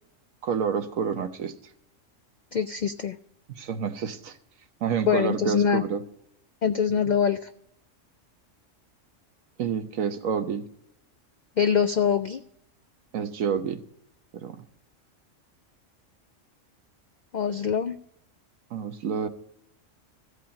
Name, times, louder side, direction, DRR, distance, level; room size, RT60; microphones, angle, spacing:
voice 1, 0.4-1.6 3.5-4.4 4.8-6.0 9.6-10.6 13.1-13.8 14.3-14.7 18.7-19.3, right 7 dB, 85° right, 9 dB, 1.3 m, -28 dB
voice 2, 2.5-3.2 5.1-5.8 6.6-7.5 11.6-12.4 17.3-18.0, left 7 dB, 85° left, 9 dB, 0.4 m, -24 dB
14.5 x 5.0 x 8.4 m, 0.75 s
omnidirectional pair, 1.4 m